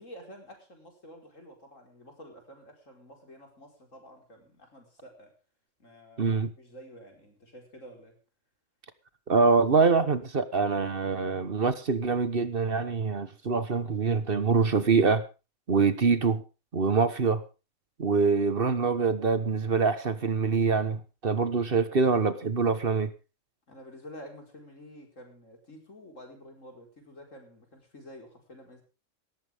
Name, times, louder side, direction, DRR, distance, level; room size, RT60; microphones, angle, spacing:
voice 1, 0.0-5.3 5.8-8.2 23.7-28.8, equal, 80° left, 5.2 m, -49 dB
voice 2, 6.2-6.5 9.3-15.2 15.7-16.4 16.7-17.4 18.0-23.1, right 4 dB, 45° right, 1.4 m, -25 dB
18.0 x 14.5 x 3.5 m
omnidirectional pair, 1.3 m